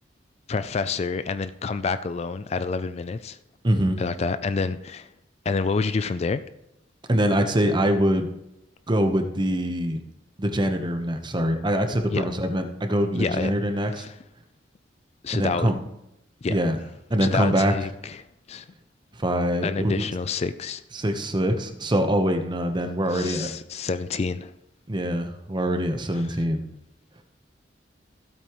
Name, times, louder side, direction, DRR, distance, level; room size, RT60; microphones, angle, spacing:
voice 1, 0.5-3.4 4.0-5.1 5.5-6.4 12.1-12.3 13.1-13.5 14.0-14.1 15.2-15.7 16.4-16.6 17.2-18.7 19.6-20.8 23.1-24.5, left 4 dB, 35° left, 0.4 m, -28 dB
voice 2, 3.6-4.0 7.1-8.3 8.9-10.0 10.4-14.0 15.3-15.8 16.5-16.8 17.1-17.7 19.2-20.0 20.9-23.5 24.9-26.6, equal, 25° right, 1.0 m, -24 dB
15.5 x 8.5 x 3.1 m
head